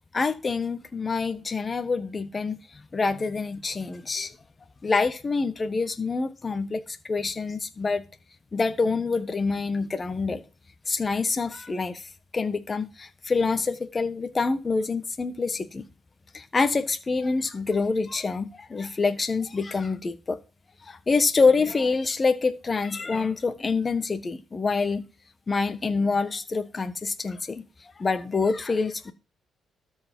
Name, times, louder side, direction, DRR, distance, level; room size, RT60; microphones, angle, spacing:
voice 1, 0.1-2.6 2.9-4.3 4.8-8.0 8.5-10.4 10.9-12.0 12.3-15.8 16.3-20.4 20.9-25.0 25.5-27.6 28.0-29.1, left 4 dB, 30° left, 1.4 m, -26 dB
13.0 x 4.8 x 7.6 m
cardioid pair, 90°, 0 cm